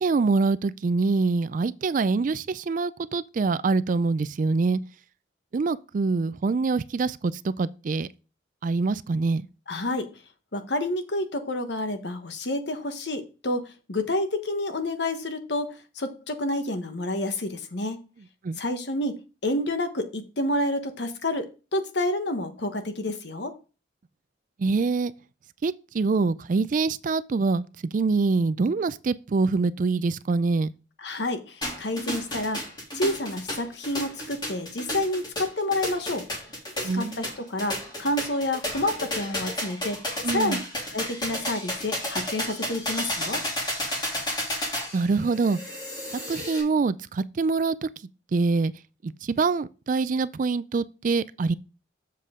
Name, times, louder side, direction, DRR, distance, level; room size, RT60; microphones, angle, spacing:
voice 1, 0.0-4.8 5.5-8.1 8.6-9.5 18.4-18.6 24.6-25.1 25.6-27.6 27.9-30.7 36.8-37.2 40.2-40.6 44.9-45.6 46.3-47.9 48.3-48.7 49.0-49.1 49.4-51.5, right 4 dB, 45° right, 0.4 m, -25 dB
voice 2, 9.7-10.1 10.5-18.0 18.6-23.5 31.0-32.7 32.9-36.3 36.9-40.0 40.3-40.6 40.9-43.4, left 1 dB, 65° left, 1.1 m, -29 dB
sound 1, 31.6-46.6, left 1 dB, 25° left, 2.9 m, -32 dB
7.6 x 6.8 x 3.7 m
head